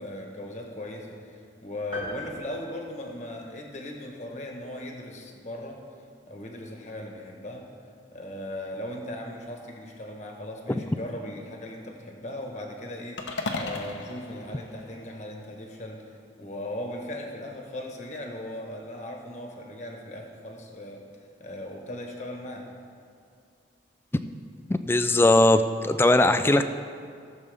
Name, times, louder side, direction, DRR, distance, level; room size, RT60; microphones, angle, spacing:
voice 1, 0.0-5.8 6.3-7.7 8.1-13.2 13.6-21.0 21.4-22.7, left 1 dB, 40° left, 1 dB, 1.3 m, -38 dB
sound 1, 1.9-3.7, left 1 dB, 30° right, 2.8 m, -40 dB
sound 2, 13.2-15.5, left 2 dB, 85° left, 0.9 m, -35 dB
voice 2, 24.7-26.7, left 2 dB, 10° left, 10 dB, 0.3 m, -20 dB
18.5 x 7.0 x 3.5 m, 2.3 s
head